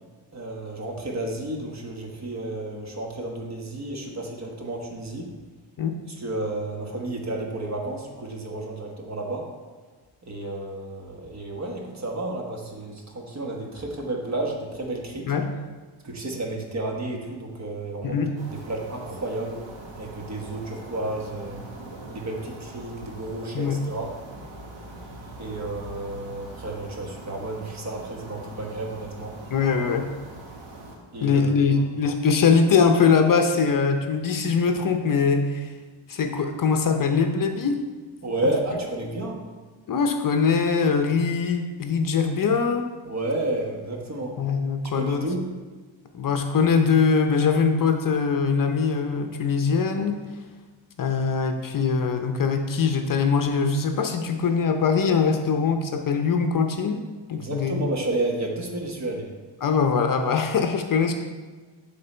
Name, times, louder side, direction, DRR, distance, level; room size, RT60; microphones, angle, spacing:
voice 1, 0.3-5.3 6.2-9.5 10.3-15.3 16.0-19.6 20.0-21.6 22.1-24.1 25.4-29.4 31.1-31.8 38.2-39.4 43.0-44.3 44.9-45.4 57.3-59.3, right 2 dB, 35° right, 1 dB, 1.3 m, -31 dB
voice 2, 18.0-18.4 23.5-23.8 29.5-30.1 31.2-35.7 36.1-37.8 39.9-42.9 44.4-45.3 46.1-50.2 51.0-57.0 57.3-57.9 59.6-61.1, left 5 dB, 45° left, 5 dB, 0.7 m, -22 dB
sound 1, 18.4-31.0, right 2 dB, 80° right, 1.5 m, -42 dB
10.5 x 3.9 x 4.4 m, 1.4 s
cardioid pair, 125°, 46 cm